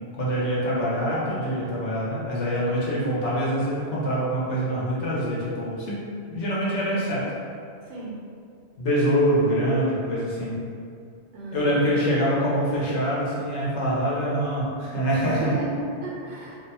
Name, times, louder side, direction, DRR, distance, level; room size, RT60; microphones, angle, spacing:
voice 1, 0.1-6.0 6.3-7.3 8.8-10.5 11.5-15.6, equal, 85° left, -7 dB, 1.0 m, -25 dB
voice 2, 7.8-8.2 11.3-11.9 15.1-16.5, right 2 dB, 90° right, -5 dB, 0.9 m, -34 dB
2.6 x 2.1 x 2.7 m, 2.4 s
omnidirectional pair, 1.2 m